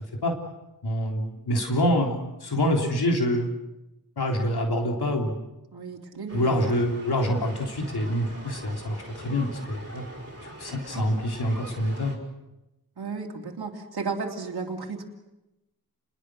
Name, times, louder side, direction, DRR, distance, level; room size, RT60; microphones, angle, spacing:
voice 1, 0.8-3.5 4.2-5.4 6.3-10.0 10.6-12.1, equal, 85° left, 1 dB, 3.7 m, -26 dB
voice 2, 5.7-6.6 10.9-11.0 13.0-15.0, right 4 dB, 80° right, 1 dB, 2.9 m, -34 dB
sound 1, 6.3-12.2, right 1 dB, 40° right, 5.6 m, -43 dB
29.5 x 21.0 x 6.4 m, 0.97 s
wide cardioid pair, 70°, 38 cm